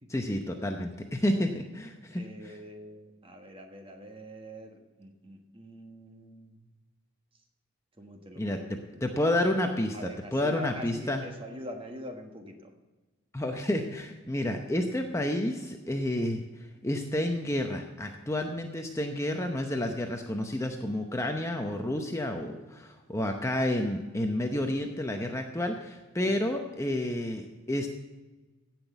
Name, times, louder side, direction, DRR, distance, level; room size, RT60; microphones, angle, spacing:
voice 1, 0.1-2.6 8.4-11.2 13.3-16.4 16.8-27.9, left 1 dB, 15° left, 4 dB, 0.8 m, -30 dB
voice 2, 2.1-6.7 8.0-9.2 9.9-12.7 26.2-26.4, equal, 25° right, 4 dB, 1.4 m, -44 dB
16.0 x 6.0 x 8.0 m, 1.2 s
head